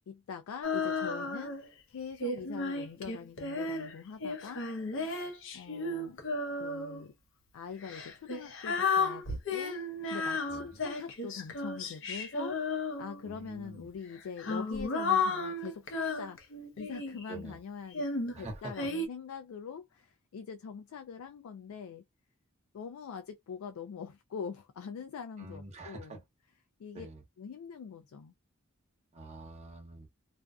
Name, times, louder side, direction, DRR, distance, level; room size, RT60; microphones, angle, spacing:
voice 1, 0.1-4.6 5.5-6.2 6.6-7.1 7.5-9.8 10.1-16.4 16.8-18.1 18.4-22.0 22.7-26.2 26.8-27.1 27.4-28.3, left 6 dB, 90° left, 0.3 m, -43 dB
Female singing, 0.6-1.7 2.2-7.0 7.8-13.4 14.1-17.3 17.9-19.1, left 3 dB, 65° left, 0.7 m, -34 dB
voice 2, 10.5-10.8 13.2-13.9 17.3-17.6 18.3-18.7 25.4-26.2 26.9-27.2 29.1-30.1, right 2 dB, 30° right, 0.9 m, -46 dB
2.5 x 2.2 x 2.3 m
head